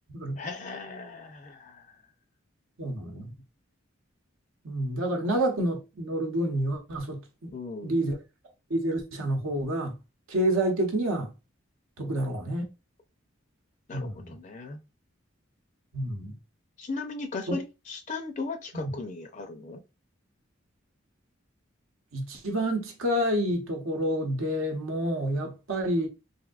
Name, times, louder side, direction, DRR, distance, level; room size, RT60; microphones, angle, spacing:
voice 1, 0.4-2.0 7.5-8.1 12.0-12.2 13.9-14.8 16.8-19.8, left 3 dB, 35° left, 0.4 m, -37 dB
voice 2, 2.8-3.3 4.6-7.5 7.8-8.2 8.7-10.0 10.3-11.3 12.0-12.7 13.9-14.4 15.9-16.3 17.5-17.6 18.7-18.9 22.1-26.1, right 1 dB, 80° right, 0.9 m, -28 dB
3.4 x 2.6 x 2.3 m
head